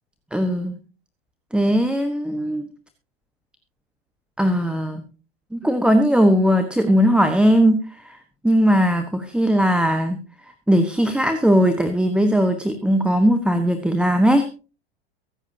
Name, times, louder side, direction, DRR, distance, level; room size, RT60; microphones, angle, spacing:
voice 1, 0.3-0.8 1.5-2.7 4.4-5.1 5.5-8.2 8.4-10.2 10.7-14.4, equal, 5° right, 8 dB, 1.3 m, -19 dB
23.5 x 8.0 x 2.8 m, 0.33 s
hypercardioid pair, 100°, 31 cm